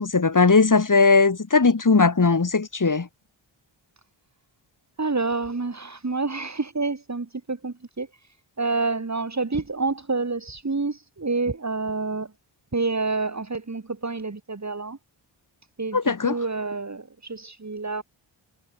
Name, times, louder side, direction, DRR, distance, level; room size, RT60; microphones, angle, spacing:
voice 1, 0.0-3.1 15.9-16.4, left 4 dB, 40° left, 3.8 m, -19 dB
voice 2, 5.0-8.1 8.6-12.3 12.7-15.0 15.8-18.0, right 3 dB, 35° right, 5.2 m, -28 dB
wide cardioid pair, 115°, 49 cm